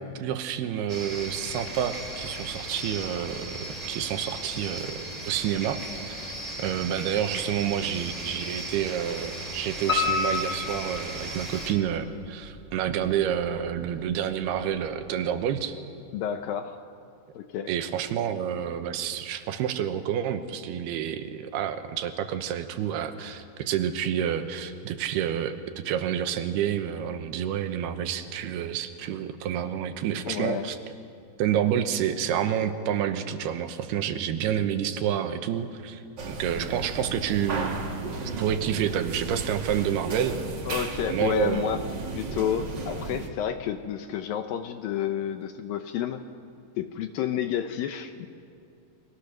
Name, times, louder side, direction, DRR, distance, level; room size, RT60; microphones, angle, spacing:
voice 1, 0.0-3.6 3.9-5.8 6.1-6.2 6.6-15.8 17.7-30.8 31.4-37.8 38.3-40.4 41.1-41.7, right 9 dB, 75° right, 9 dB, 2.9 m, -29 dB
sound 1, 0.9-11.7, right 2 dB, 10° right, 2.5 m, -37 dB
Piano, 9.9-11.8 12.2-13.1 13.4-13.5 14.0-14.1 14.3-14.4, left 5 dB, 20° left, 3.8 m, -29 dB
voice 2, 16.1-16.8 17.3-17.7 30.3-30.7 40.7-41.8 42.1-46.2 46.8-48.3, left 9 dB, 75° left, 8 dB, 2.2 m, -30 dB
sound 2, 36.2-43.3, right 3 dB, 60° right, 1.1 m, -34 dB
29.5 x 23.5 x 6.6 m, 2.5 s
omnidirectional pair, 4.9 m